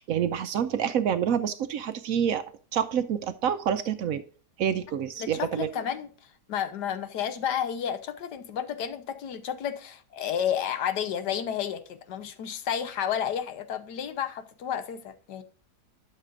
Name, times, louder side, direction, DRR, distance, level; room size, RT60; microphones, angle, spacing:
voice 1, 0.0-2.4 2.7-4.2 4.6-5.7, right 8 dB, 65° right, 0.9 m, -27 dB
voice 2, 5.2-6.1 6.5-15.4, left 9 dB, 85° left, 1.5 m, -31 dB
12.0 x 6.7 x 2.5 m
omnidirectional pair, 1.8 m